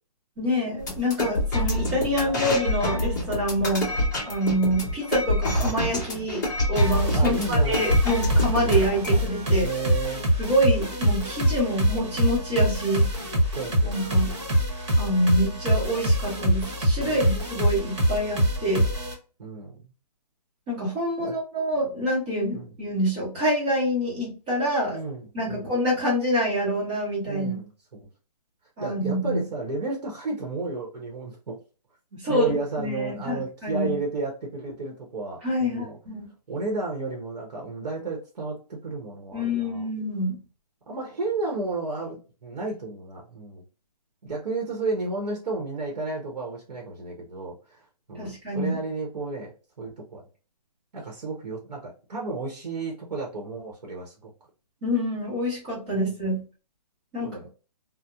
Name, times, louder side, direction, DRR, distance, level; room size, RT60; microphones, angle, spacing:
voice 1, 0.4-3.9 4.3-9.7 10.4-13.1 13.8-14.3 15.0-18.9 20.7-25.0 25.3-27.6 28.8-29.4 32.1-33.9 35.4-36.3 39.3-40.4 48.2-48.8 54.8-56.4 57.1-57.5, equal, 15° right, -8 dB, 0.8 m, -26 dB
sound 1, 0.8-9.2, left 1 dB, 25° left, 0.7 m, -27 dB
sound 2, 6.8-19.1, equal, 40° right, 0.9 m, -24 dB
voice 2, 7.1-8.0 8.5-8.8 9.6-10.3 13.5-14.0 17.0-17.3 19.4-19.7 21.2-21.4 22.5-22.7 24.9-25.7 27.3-28.1 28.8-31.6 32.1-36.0 36.5-39.9 40.9-43.6 44.2-50.2 50.9-54.3 57.2-57.5, right 3 dB, 80° right, 0 dB, 0.9 m, -32 dB
2.8 x 2.0 x 2.3 m, 0.35 s
hypercardioid pair, 175°, 21 cm